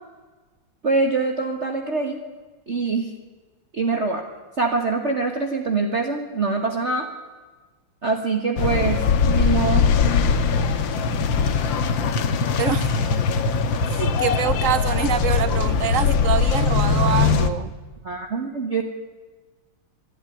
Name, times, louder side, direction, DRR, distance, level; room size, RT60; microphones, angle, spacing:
voice 1, 0.8-2.2 2.7-3.1 3.7-4.2 4.6-7.1 8.0-9.0 9.3-9.9 18.0-18.8, right 4 dB, 35° right, 3 dB, 1.6 m, -24 dB
sound 1, 8.6-17.5, left 5 dB, 65° left, 1.9 m, -21 dB
voice 2, 12.6-13.0 13.9-17.7, right 9 dB, 65° right, 16 dB, 0.8 m, -25 dB
23.5 x 12.5 x 10.0 m, 1.3 s
omnidirectional pair, 2.3 m